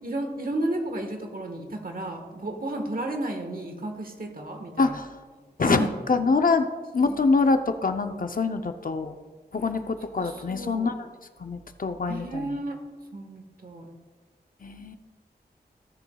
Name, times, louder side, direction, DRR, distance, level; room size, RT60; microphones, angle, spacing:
voice 1, 0.0-4.9 5.6-5.9 7.0-7.2 10.1-10.9 12.1-12.8 13.1-13.9, right 1 dB, 60° right, 4 dB, 1.4 m, -32 dB
voice 2, 4.8-5.1 5.6-6.7 6.9-9.2 9.5-10.9 11.4-12.6 14.6-15.0, left 4 dB, 55° left, 7 dB, 0.6 m, -25 dB
18.0 x 7.0 x 2.3 m, 1.4 s
wide cardioid pair, 90°, 17 cm